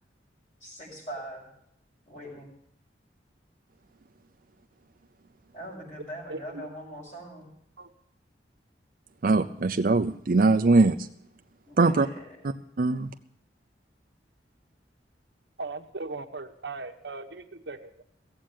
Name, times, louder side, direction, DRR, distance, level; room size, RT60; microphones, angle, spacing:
voice 1, 0.6-1.5 2.1-2.5 5.5-7.5 11.7-12.4, equal, 40° left, -8 dB, 5.9 m, -42 dB
voice 2, 6.3-6.7 7.8-7.9 15.6-18.1, right 3 dB, 75° right, 6 dB, 1.2 m, -38 dB
voice 3, 9.2-11.0 11.8-12.1 12.8-13.1, right 3 dB, 50° right, 6 dB, 0.5 m, -21 dB
16.0 x 7.6 x 8.9 m, 0.69 s
head